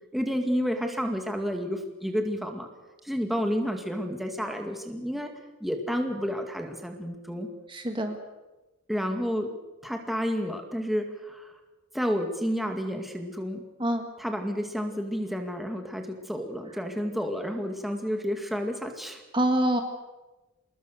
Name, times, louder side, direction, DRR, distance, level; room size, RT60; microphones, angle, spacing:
voice 1, 0.1-2.7 3.0-5.3 5.6-7.5 8.9-9.5 9.8-11.5 11.9-13.6 14.2-19.2, equal, ahead, 3 dB, 2.1 m, -30 dB
voice 2, 7.7-8.2 13.8-14.1 19.3-19.8, right 1 dB, 20° right, 5 dB, 1.8 m, -25 dB
26.5 x 20.5 x 6.6 m, 1.1 s
head